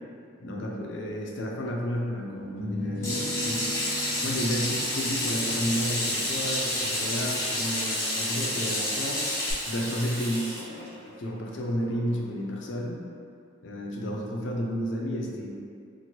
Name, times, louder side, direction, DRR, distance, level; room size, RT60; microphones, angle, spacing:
voice 1, 0.4-3.7 4.2-9.2 9.6-10.5 11.2-13.0 13.6-15.5, equal, 75° left, -1 dB, 0.4 m, -31 dB
sound 1, 2.4-7.6, equal, 10° right, 0.9 m, -39 dB
Water tap faucet / Sink (filling or washing), 3.0-9.5, left 1 dB, 15° left, 0.6 m, -30 dB
Water tap faucet / Sink (filling or washing) 2, 3.2-12.5, equal, 70° right, 1.0 m, -36 dB
2.9 x 2.5 x 2.8 m, 2.4 s
head